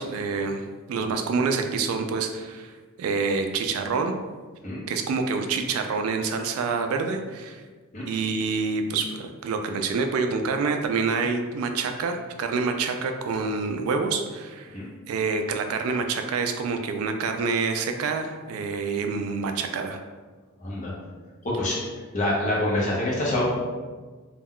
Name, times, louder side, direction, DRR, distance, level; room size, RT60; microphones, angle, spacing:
voice 1, 0.0-2.7 3.0-4.1 4.9-7.6 8.1-14.8 15.1-20.0, right 4 dB, 85° right, 5 dB, 0.3 m, -27 dB
voice 2, 20.6-20.9 21.4-21.8 22.1-23.4, left 1 dB, 35° left, -5 dB, 0.6 m, -26 dB
2.2 x 2.1 x 3.6 m, 1.4 s
head